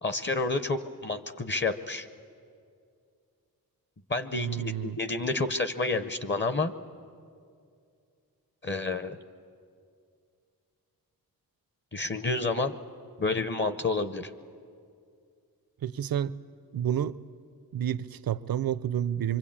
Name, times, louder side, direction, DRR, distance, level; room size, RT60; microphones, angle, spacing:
voice 1, 0.0-2.1 4.1-6.7 8.6-9.2 11.9-12.7 13.2-14.3, left 3 dB, 30° left, 0.7 m, -29 dB
voice 2, 4.3-5.0 15.8-16.4 16.7-17.2 17.7-19.4, right 10 dB, 75° right, 0.6 m, -30 dB
24.5 x 24.5 x 8.7 m
wide cardioid pair, 160°, 36 cm